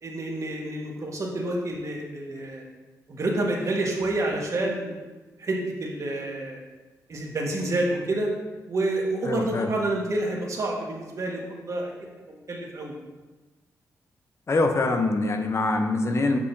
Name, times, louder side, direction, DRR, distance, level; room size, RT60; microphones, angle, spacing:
voice 1, 0.0-2.6 3.1-5.0 5.4-6.6 7.1-8.3 8.7-11.9 12.3-12.9, right 2 dB, 50° right, -1 dB, 1.6 m, -28 dB
voice 2, 9.3-9.7 14.5-16.4, left 2 dB, 45° left, 5 dB, 0.8 m, -24 dB
7.3 x 6.8 x 2.7 m, 1.2 s
cardioid pair, 70°, 7 cm